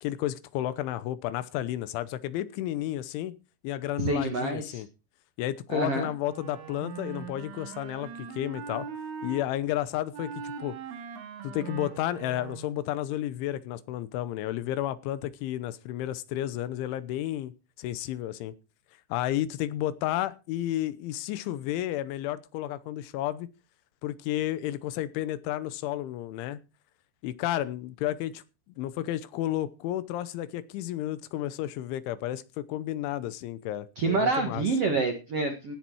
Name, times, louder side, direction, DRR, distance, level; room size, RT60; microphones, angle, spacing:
voice 1, 0.0-3.3 3.6-4.9 5.4-8.9 9.2-10.7 11.4-17.5 17.8-18.5 19.1-23.5 24.0-26.6 27.2-28.4 28.8-34.6, left 13 dB, 80° left, 15 dB, 3.2 m, -32 dB
voice 2, 4.0-4.8 5.7-6.1 33.9-35.7, right 3 dB, 65° right, 6 dB, 1.5 m, -27 dB
Wind instrument woodwind instrument, 6.2-9.5 10.1-12.9, right 6 dB, 80° right, 4.5 m, -41 dB
17.0 x 9.8 x 4.6 m, 0.31 s
omnidirectional pair, 5.6 m